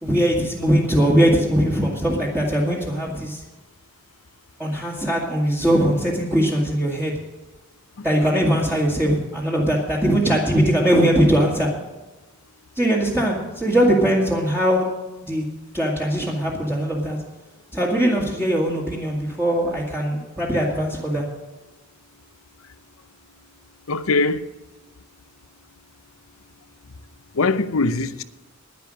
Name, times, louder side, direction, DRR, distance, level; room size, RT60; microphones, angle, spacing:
voice 1, 0.0-3.4 4.6-7.1 8.0-11.7 12.8-14.9 15.3-15.4 15.7-17.2 17.7-21.2, equal, 10° right, 1.9 m, -20 dB
voice 2, 23.9-24.5 27.3-28.2, left 3 dB, 80° left, 0.7 m, -21 dB
10.5 x 10.5 x 7.6 m
head